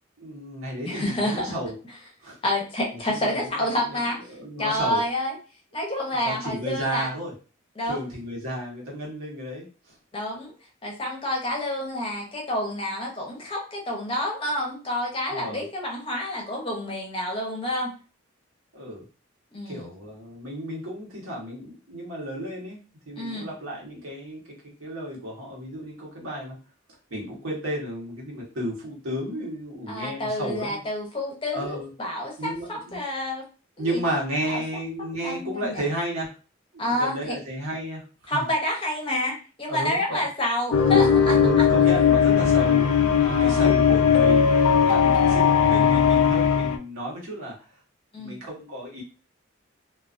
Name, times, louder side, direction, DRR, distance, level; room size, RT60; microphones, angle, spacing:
voice 1, 0.2-1.7 2.2-2.4 2.9-4.0 4.3-5.0 6.1-7.3 7.8-9.9 15.3-15.6 18.7-19.0 19.6-22.8 23.0-26.6 27.1-30.8 31.5-31.9 32.4-33.0 33.8-36.3 36.7-38.4 39.7-40.2 41.4-47.5 48.2-49.0, equal, 85° right, -3 dB, 1.0 m, -33 dB
voice 2, 0.9-1.6 2.4-4.2 4.6-5.4 5.7-7.1 7.8-8.0 10.1-10.5 10.8-17.9 19.5-19.9 23.2-23.5 29.9-33.5 33.8-34.0 34.5-34.6 35.2-35.8 36.8-37.4 38.3-41.6 43.2-43.7 45.6-46.0 48.1-48.4, left 1 dB, 25° left, 0 dB, 0.6 m, -29 dB
sound 1, 40.7-46.8, left 7 dB, 85° left, 0.3 m, -18 dB
2.3 x 2.3 x 2.4 m, 0.35 s
head